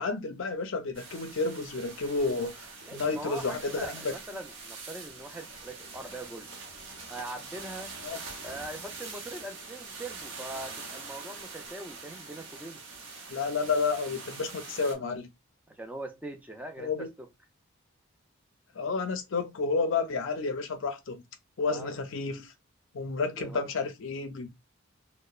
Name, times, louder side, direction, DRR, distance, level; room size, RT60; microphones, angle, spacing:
voice 1, 0.0-2.5 2.9-4.1 8.0-8.2 13.3-15.3 16.8-17.1 18.8-21.2 21.6-22.5 22.9-24.5, left 4 dB, 65° left, 0.5 m, -31 dB
sound 1, 0.9-15.0, right 4 dB, 65° right, 0.7 m, -44 dB
voice 2, 2.8-6.5 7.1-7.9 8.4-12.8 15.7-17.3 21.6-21.9 23.4-23.7, right 1 dB, 5° right, 0.4 m, -42 dB
2.9 x 2.0 x 2.3 m
head